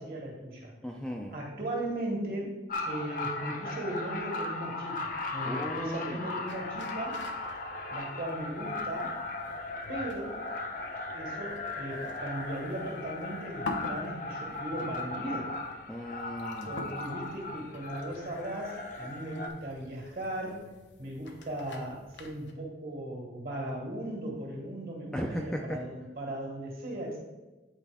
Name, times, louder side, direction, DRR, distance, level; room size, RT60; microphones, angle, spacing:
voice 1, 0.0-0.7 1.3-2.6 2.8-7.2 7.9-9.2 9.9-10.4 11.1-15.5 16.6-20.6 21.0-27.2, right 1 dB, 55° right, -2 dB, 2.0 m, -37 dB
voice 2, 0.8-1.4 5.5-6.2 15.9-16.8 25.1-25.8, equal, 5° left, 0 dB, 0.4 m, -36 dB
sound 1, 2.7-19.5, left 2 dB, 45° left, 0.7 m, -37 dB
sound 2, 6.5-22.5, left 2 dB, 85° left, 0.9 m, -47 dB
8.9 x 4.4 x 3.5 m, 1.2 s
head